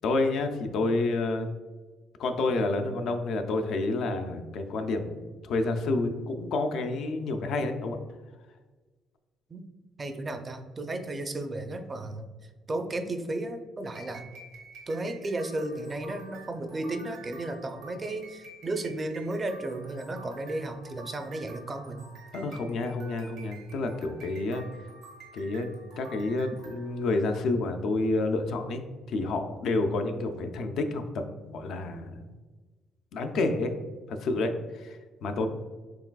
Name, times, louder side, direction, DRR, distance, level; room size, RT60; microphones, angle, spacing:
voice 1, 0.0-1.5 2.2-8.0 22.3-24.6 25.3-25.7 26.0-32.2 33.1-33.7 34.1-35.5, left 2 dB, 70° left, 6 dB, 0.4 m, -29 dB
voice 2, 10.0-12.3 12.7-14.3 14.9-22.1 35.4-35.5, right 2 dB, 30° right, 6 dB, 0.4 m, -34 dB
sound 1, 13.8-27.0, right 3 dB, 85° right, 1.1 m, -50 dB
4.7 x 3.2 x 2.2 m, 1.3 s
cardioid pair, 110°, 0 cm